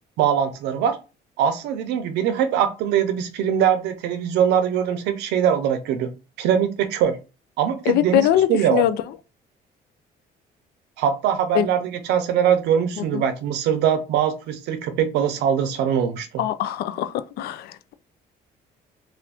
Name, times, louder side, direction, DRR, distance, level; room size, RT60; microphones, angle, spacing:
voice 1, 0.2-1.0 1.4-6.1 6.4-7.2 7.6-8.2 8.5-8.8 11.0-16.4, right 8 dB, 85° right, 0.6 m, -22 dB
voice 2, 7.9-9.0 11.5-11.7 13.0-13.2 16.4-17.9, left 12 dB, 70° left, 0.4 m, -22 dB
2.5 x 2.5 x 3.4 m
cardioid pair, 110°, 17 cm